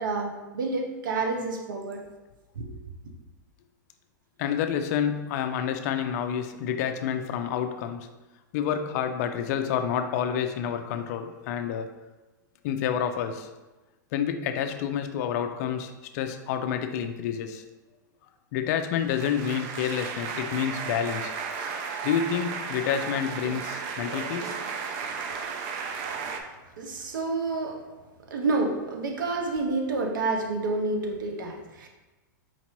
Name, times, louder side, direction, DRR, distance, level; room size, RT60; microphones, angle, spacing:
voice 1, 0.0-2.0 2.6-2.7 26.1-26.2 26.8-27.8 28.3-31.9, right 3 dB, 80° right, 3 dB, 0.8 m, -29 dB
voice 2, 4.4-8.1 8.5-11.9 12.6-13.5 14.1-17.6 18.5-21.3 22.0-24.5, left 8 dB, 55° left, 8 dB, 0.4 m, -29 dB
sound 1, 19.0-26.4, right 5 dB, 45° right, 0.4 m, -34 dB
4.4 x 2.8 x 2.9 m, 1.1 s
hypercardioid pair, 130°, 11 cm